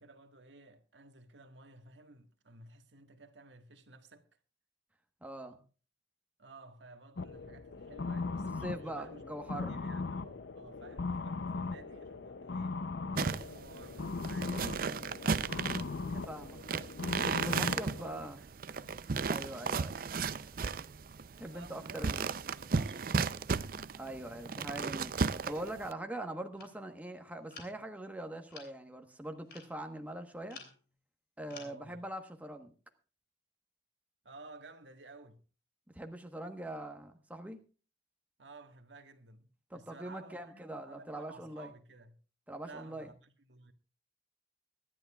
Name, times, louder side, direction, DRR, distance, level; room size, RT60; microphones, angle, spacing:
voice 1, 0.0-4.3 6.4-9.3 9.7-12.8 13.3-16.9 17.5-19.0 21.5-23.9 31.5-32.0 34.2-35.4 38.4-42.2 42.6-43.7, right 3 dB, 85° right, 1.6 m, -55 dB
voice 2, 5.2-5.6 8.6-9.8 16.3-16.6 17.2-18.4 19.3-20.0 21.4-22.2 24.0-30.6 31.4-32.7 35.9-37.6 39.7-41.7 42.5-43.1, right 1 dB, 10° right, 1.2 m, -42 dB
sound 1, 7.2-18.3, left 3 dB, 75° left, 0.6 m, -39 dB
sound 2, 13.2-25.9, right 5 dB, 50° right, 0.5 m, -35 dB
sound 3, 26.6-26.8 27.5-27.9 28.5-28.9 29.5-29.7 30.5-30.8 31.5-31.8, left 4 dB, 60° left, 3.1 m, -51 dB
24.0 x 11.0 x 2.3 m
head